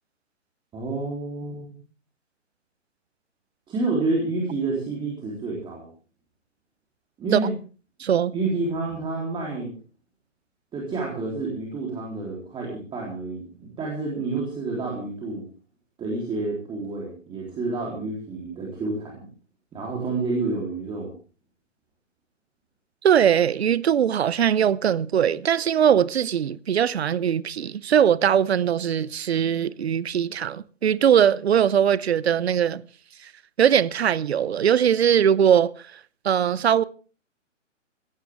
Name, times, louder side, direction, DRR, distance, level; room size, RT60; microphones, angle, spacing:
voice 1, 0.7-1.7 3.7-5.9 7.2-7.5 8.3-9.7 10.7-15.4 16.0-19.3 19.7-21.1, right 3 dB, 15° right, 3.7 m, -29 dB
voice 2, 8.0-8.3 23.0-32.8 33.6-36.0 36.2-36.8, right 9 dB, 55° right, 0.8 m, -21 dB
17.5 x 16.0 x 3.6 m
figure-of-eight pair, 135°, 38 cm